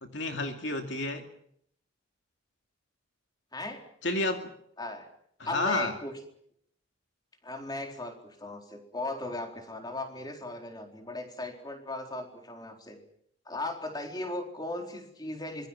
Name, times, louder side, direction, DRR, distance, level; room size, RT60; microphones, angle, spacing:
voice 1, 0.0-1.2 4.0-4.5 5.4-5.9, left 2 dB, 60° left, 5 dB, 2.6 m, -30 dB
voice 2, 4.8-5.1 5.4-6.1 7.4-13.0 13.5-15.7, left 2 dB, 20° left, 3 dB, 4.2 m, -37 dB
25.5 x 22.5 x 7.4 m, 0.67 s
head